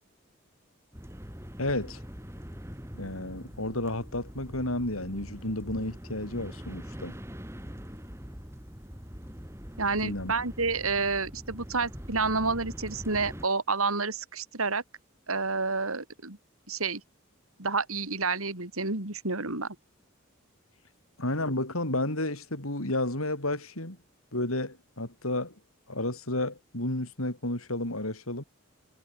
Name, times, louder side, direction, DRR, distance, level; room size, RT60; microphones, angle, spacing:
sound 1, 0.9-13.5, equal, 10° right, 3.2 m, -43 dB
voice 1, 1.6-2.0 2.9-7.2 10.0-10.3 21.2-24.0 24.3-25.5 25.9-28.4, left 1 dB, 85° left, 6.8 m, -32 dB
voice 2, 9.8-14.8 15.3-16.4 16.7-17.0 17.6-19.8, right 4 dB, 85° right, 4.2 m, -29 dB
head